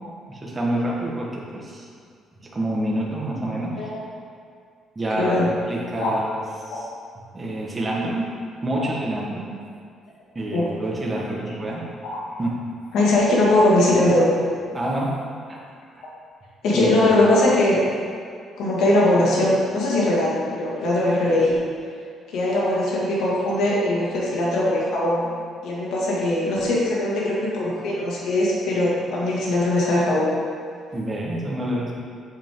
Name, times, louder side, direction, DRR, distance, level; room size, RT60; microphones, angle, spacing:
voice 1, 0.3-1.9 2.4-3.8 4.9-6.9 7.3-8.3 8.6-9.5 10.3-11.9 12.4-12.6 14.7-15.1 15.5-15.6 16.0-16.1 16.7-17.1 30.9-32.0, right 1 dB, 20° right, -3 dB, 1.6 m, -27 dB
voice 2, 5.2-5.5 6.0-6.1 6.7-6.8 8.8-8.9 10.5-10.6 12.9-14.3 16.6-17.8 18.6-21.5 22.3-25.3 25.6-30.3, left 1 dB, 70° left, -5 dB, 2.3 m, -20 dB
8.2 x 8.2 x 3.9 m, 2.2 s
cardioid pair, 150°, 0 cm